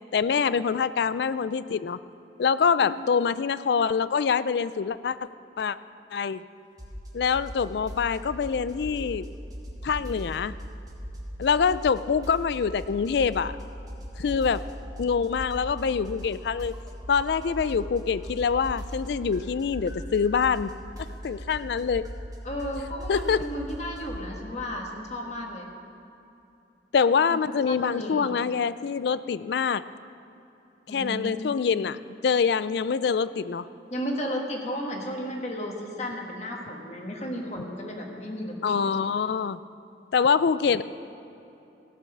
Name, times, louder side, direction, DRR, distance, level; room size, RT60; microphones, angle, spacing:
voice 1, 0.1-2.0 2.4-5.2 5.6-5.8 6.1-6.4 7.1-9.3 9.8-10.5 11.4-13.5 14.2-14.6 15.0-16.7 17.1-20.7 21.0-22.1 23.1-23.5 26.9-29.8 30.9-32.0 32.2-33.7 38.6-39.6 40.1-40.8, left 6 dB, 60° left, 15 dB, 0.3 m, -25 dB
sound 1, 6.8-7.1 7.3-9.3 9.5-11.4 11.7-13.6 13.9-18.0 18.2-24.1, equal, 20° right, 1.3 m, -39 dB
voice 2, 22.4-25.7 27.3-27.4 27.7-28.3 30.9-31.4 33.9-39.0, equal, 35° left, 1 dB, 1.5 m, -34 dB
16.0 x 7.0 x 6.0 m, 2.8 s
head